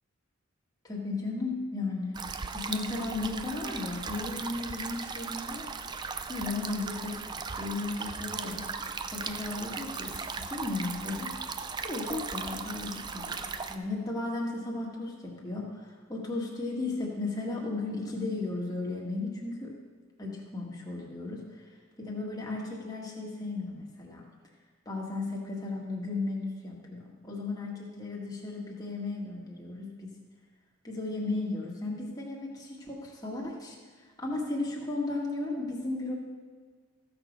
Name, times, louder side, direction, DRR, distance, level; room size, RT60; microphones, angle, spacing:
voice 1, 0.8-2.2 2.5-5.7 6.3-8.7 9.1-11.5 11.8-13.4 13.7-19.8 20.2-21.6 22.0-24.2 24.9-30.1 30.8-33.8 34.2-36.1, left 2 dB, 20° left, -3 dB, 1.8 m, -35 dB
sound 1, 2.1-13.8, right 5 dB, 20° right, 0.3 m, -37 dB
15.0 x 6.2 x 5.2 m, 1.5 s
head